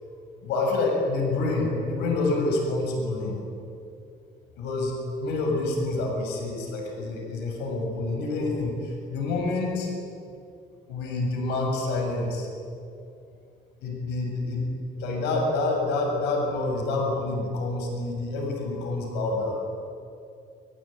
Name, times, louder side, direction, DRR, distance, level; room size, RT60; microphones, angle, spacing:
voice 1, 0.4-3.4 4.6-4.9 5.2-9.9 10.9-12.5 13.8-14.7 15.0-19.6, left 2 dB, 90° left, 2 dB, 7.3 m, -27 dB
29.5 x 19.0 x 9.1 m, 2.5 s
cardioid pair, 110°, 17 cm